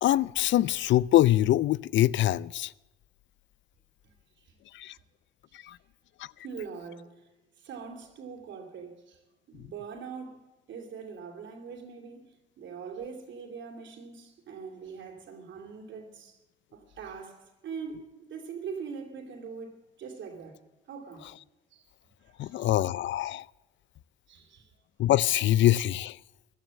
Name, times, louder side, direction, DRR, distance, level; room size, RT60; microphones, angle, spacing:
voice 1, 0.0-2.7 4.7-4.9 5.6-5.8 6.2-6.3 22.4-23.5 25.0-26.2, left 14 dB, 70° left, 0.4 m, -24 dB
voice 2, 4.0-4.5 6.4-7.1 7.6-9.2 9.5-12.3 12.6-16.4 16.7-20.6 20.9-21.3 21.7-21.8 22.3-22.7 24.3-24.7, right 6 dB, 70° right, 2.8 m, -42 dB
14.0 x 12.5 x 7.5 m
cardioid pair, 90°, 20 cm